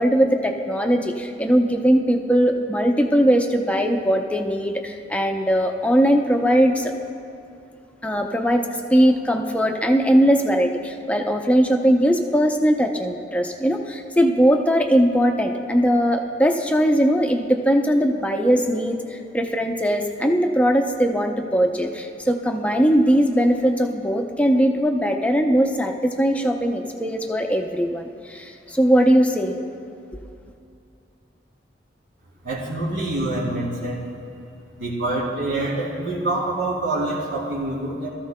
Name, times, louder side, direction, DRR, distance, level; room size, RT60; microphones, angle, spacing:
voice 1, 0.0-6.9 8.0-29.5, equal, 5° left, 3 dB, 0.6 m, -20 dB
voice 2, 32.4-34.0 34.8-38.1, right 2 dB, 75° right, -8 dB, 3.1 m, -26 dB
19.5 x 13.5 x 2.2 m, 2.6 s
head